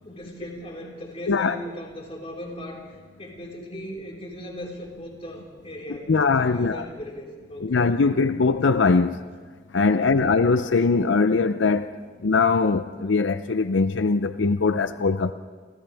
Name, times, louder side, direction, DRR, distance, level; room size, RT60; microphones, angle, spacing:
voice 1, 0.0-8.2 9.9-10.3, equal, 35° left, 4.8 m, -38 dB
voice 2, 6.1-6.9 7.6-9.2 9.7-15.3, left 4 dB, 90° left, 0.6 m, -21 dB
29.0 x 28.0 x 3.5 m
head